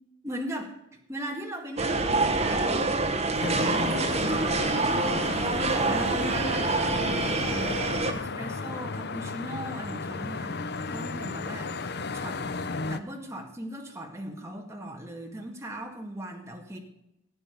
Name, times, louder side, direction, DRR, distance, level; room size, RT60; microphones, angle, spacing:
voice 1, 0.2-0.7 1.1-6.7 7.0-10.6 10.9-11.7 12.1-12.5 12.9-16.8, right 1 dB, 15° right, 1 dB, 2.0 m, -38 dB
sound 1, 1.8-8.1, right 3 dB, 35° right, 1.1 m, -26 dB
sound 2, 3.4-13.0, left 3 dB, 60° left, 0.7 m, -34 dB
15.5 x 9.1 x 5.3 m, 0.84 s
head